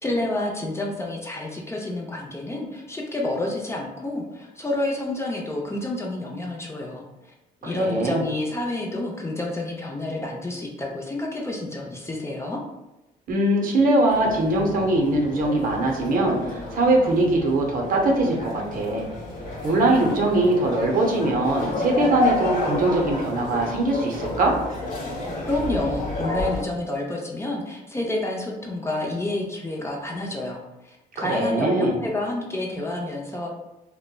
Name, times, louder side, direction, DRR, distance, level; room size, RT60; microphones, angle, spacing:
voice 1, 0.0-7.3 7.6-12.6 25.5-33.6, left 2 dB, 15° left, -1 dB, 0.5 m, -29 dB
voice 2, 7.6-8.3 13.3-19.1 19.6-24.6 31.2-32.0, right 2 dB, 55° right, 0 dB, 0.6 m, -22 dB
sound 1, 14.1-26.6, left 2 dB, 55° left, 1.0 m, -31 dB
2.8 x 2.1 x 2.2 m, 0.96 s
supercardioid pair, 75°, 17 cm